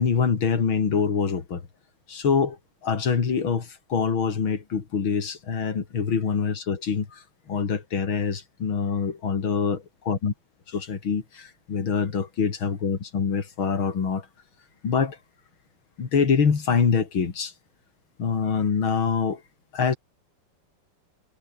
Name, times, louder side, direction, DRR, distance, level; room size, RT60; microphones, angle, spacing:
voice 1, 0.0-1.6 2.1-2.6 2.8-10.3 10.7-14.3 14.8-15.2 16.0-17.5 18.2-19.4 19.7-20.0, left 6 dB, 90° left, 3.5 m, -25 dB
omnidirectional pair, 2.2 m